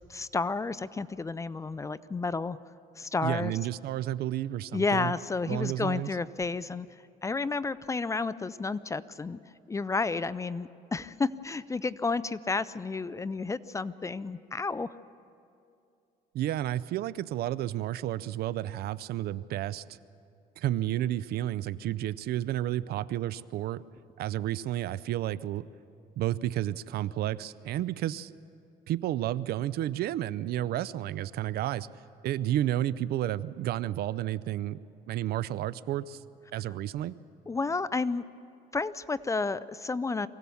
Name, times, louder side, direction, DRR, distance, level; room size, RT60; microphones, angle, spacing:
voice 1, 0.1-2.6 3.0-3.5 4.7-6.9 7.2-9.4 9.7-14.9 37.5-38.2 38.7-40.3, left 4 dB, 20° left, 17 dB, 0.4 m, -31 dB
voice 2, 3.2-5.1 5.5-6.1 16.3-19.8 20.6-23.8 24.2-25.7 26.2-28.3 28.9-31.9 32.2-34.8 35.1-36.2 36.5-37.2, right 13 dB, 70° right, 18 dB, 0.5 m, -31 dB
23.5 x 16.5 x 7.1 m, 2.6 s
cardioid pair, 110°, 17 cm